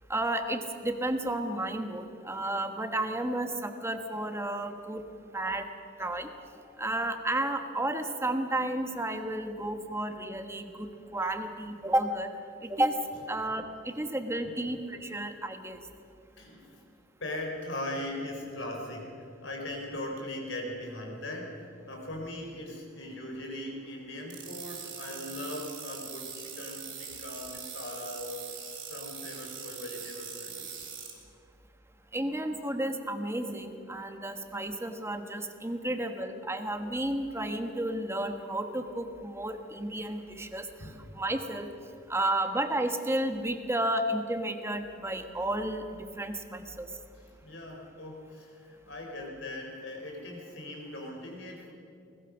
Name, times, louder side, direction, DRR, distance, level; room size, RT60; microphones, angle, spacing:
voice 1, 0.1-5.0 5.3-5.7 6.0-6.3 6.8-12.3 12.6-12.9 13.3-15.8 32.1-41.7 42.1-45.8 46.2-46.9, right 1 dB, 15° right, 6 dB, 1.4 m, -32 dB
voice 2, 16.4-16.8 17.2-28.5 28.8-30.9 40.8-41.0 47.1-51.7, left 1 dB, 70° left, 1 dB, 4.5 m, -40 dB
sound 1, 24.3-31.1, right 7 dB, 90° right, 5.0 m, -42 dB
21.0 x 20.0 x 6.4 m, 2.5 s
head